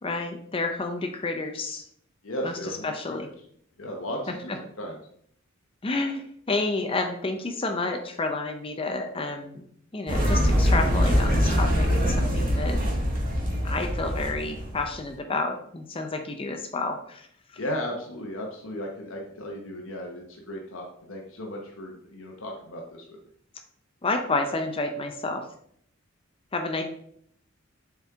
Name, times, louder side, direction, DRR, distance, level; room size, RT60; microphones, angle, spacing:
voice 1, 0.0-1.8 2.4-2.5 2.8-3.3 5.8-9.6 9.9-12.8 13.6-17.3 24.0-25.4 26.5-26.8, left 3 dB, 25° left, 5 dB, 0.6 m, -30 dB
voice 2, 2.2-3.3 3.8-4.5 4.8-5.0 17.6-23.2, equal, 75° left, 0 dB, 1.0 m, -35 dB
sound 1, 10.1-15.0, equal, 45° right, 2.1 m, -23 dB
7.1 x 4.4 x 3.6 m, 0.66 s
head